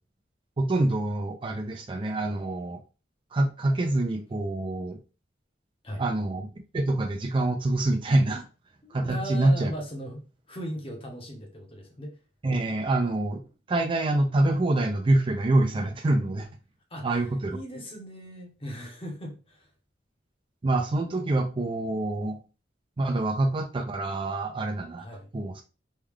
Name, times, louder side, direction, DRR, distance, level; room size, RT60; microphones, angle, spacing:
voice 1, 0.6-2.8 3.3-5.0 6.0-6.5 6.7-8.4 8.9-9.7 12.4-13.4 13.7-16.5 17.0-17.6 20.6-22.4 23.0-25.1 25.3-25.6, right 2 dB, 30° right, 4 dB, 0.4 m, -26 dB
voice 2, 8.8-12.1 16.9-17.2 17.5-19.7 23.1-23.3 25.0-25.3, equal, 30° left, 2 dB, 0.9 m, -38 dB
3.1 x 2.3 x 3.5 m, 0.33 s
head